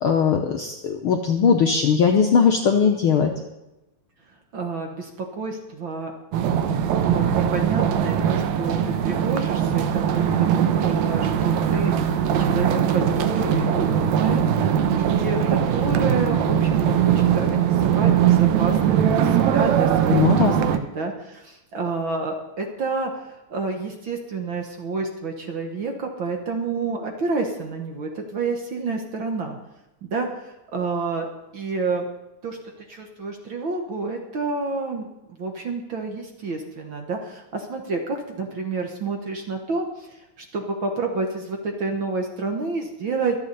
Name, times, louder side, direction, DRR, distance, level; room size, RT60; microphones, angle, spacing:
voice 1, 0.0-3.3 20.1-20.6, left 6 dB, 70° left, 3 dB, 1.3 m, -19 dB
voice 2, 4.5-6.1 7.1-29.6 30.0-32.1 32.4-32.6 32.9-35.1 35.4-43.4, right 4 dB, 50° right, 3 dB, 1.7 m, -29 dB
sound 1, 6.3-20.8, right 9 dB, 70° right, 2.1 m, -21 dB
24.5 x 8.5 x 4.1 m, 0.95 s
omnidirectional pair, 3.5 m